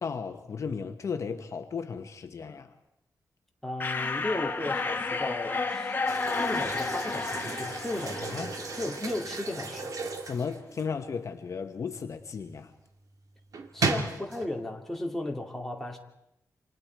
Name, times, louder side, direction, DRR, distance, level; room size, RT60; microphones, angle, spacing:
voice 1, 0.0-2.7 8.3-8.5 10.3-12.7, left 5 dB, 55° left, 6 dB, 1.2 m, -35 dB
voice 2, 3.6-5.9 6.4-9.9 13.7-16.0, left 2 dB, 5° left, 0 dB, 2.6 m, -35 dB
sound 1, 3.8-9.3, left 4 dB, 30° left, 1.6 m, -32 dB
sound 2, 6.1-11.0 13.5-14.5, right 4 dB, 65° right, 2.3 m, -34 dB
29.0 x 26.5 x 4.7 m, 0.84 s
wide cardioid pair, 145°, 7 cm